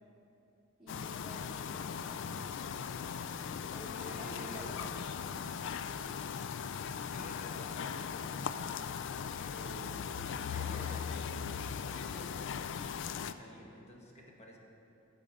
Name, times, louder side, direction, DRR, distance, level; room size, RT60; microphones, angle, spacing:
voice 1, 0.8-2.8 3.7-5.1, right 1 dB, ahead, -9 dB, 1.4 m, -50 dB
sound 1, 0.9-13.3, left 7 dB, 60° left, 0.3 m, -39 dB
voice 2, 3.9-4.7 7.0-8.8 9.4-10.1 10.4-14.6, left 1 dB, 35° left, -1 dB, 1.3 m, -51 dB
10.5 x 7.1 x 5.3 m, 2.9 s
head